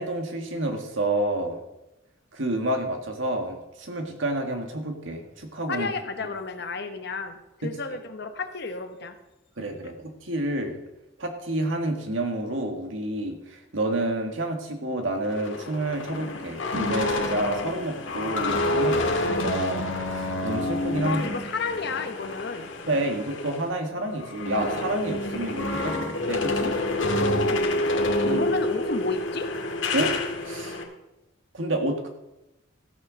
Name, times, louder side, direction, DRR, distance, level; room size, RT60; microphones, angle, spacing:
voice 1, 0.0-1.6 2.3-5.9 7.6-7.7 9.6-10.8 11.2-21.2 22.9-26.7 28.0-28.4 29.9-30.1 30.4-30.8 31.5-32.1, right 1 dB, 75° right, 4 dB, 1.8 m, -29 dB
voice 2, 5.7-9.1 21.0-22.7 27.2-27.7 28.0-29.5, left 3 dB, 55° left, 8 dB, 0.9 m, -32 dB
sound 1, 15.2-23.6 24.0-30.8, left 2 dB, 70° left, 1.8 m, -28 dB
14.5 x 6.7 x 6.4 m, 0.94 s
head